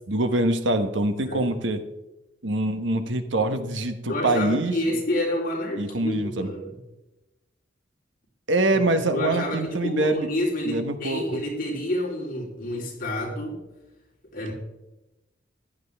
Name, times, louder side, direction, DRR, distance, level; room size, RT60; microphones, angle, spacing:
voice 1, 0.1-1.8 2.4-4.8 5.8-6.5 8.5-10.3 10.7-11.4, right 2 dB, 80° right, 9 dB, 1.2 m, -24 dB
voice 2, 4.0-6.8 9.1-13.6 14.3-14.5, left 1 dB, 50° left, -3 dB, 3.6 m, -29 dB
15.0 x 10.5 x 3.5 m, 0.99 s
head